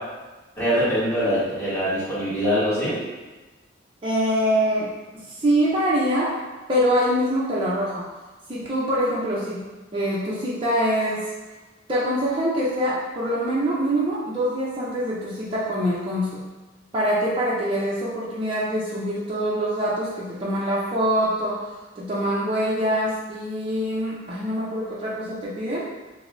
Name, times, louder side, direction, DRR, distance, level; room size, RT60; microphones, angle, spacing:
voice 1, 0.6-3.0, equal, 10° left, -11 dB, 1.2 m, -23 dB
voice 2, 4.0-6.3 6.7-8.0 8.5-9.7 9.9-11.2 11.9-16.4 16.9-25.9, equal, 25° right, -8 dB, 0.5 m, -24 dB
4.9 x 2.0 x 2.5 m, 1.2 s
head